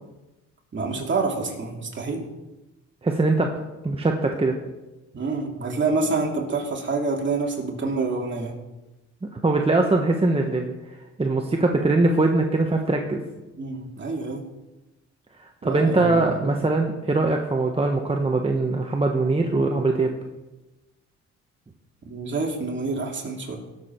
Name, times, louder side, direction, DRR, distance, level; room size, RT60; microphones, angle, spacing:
voice 1, 0.7-2.3 5.1-8.5 13.6-14.4 15.6-16.7 22.1-23.6, right 3 dB, 40° right, 0 dB, 2.8 m, -27 dB
voice 2, 3.0-3.5 3.8-4.6 9.3-10.7 11.2-13.2 15.4-20.1, right 2 dB, 20° right, 2 dB, 1.2 m, -22 dB
18.0 x 7.4 x 4.6 m, 1.1 s
cardioid pair, 90°, 30 cm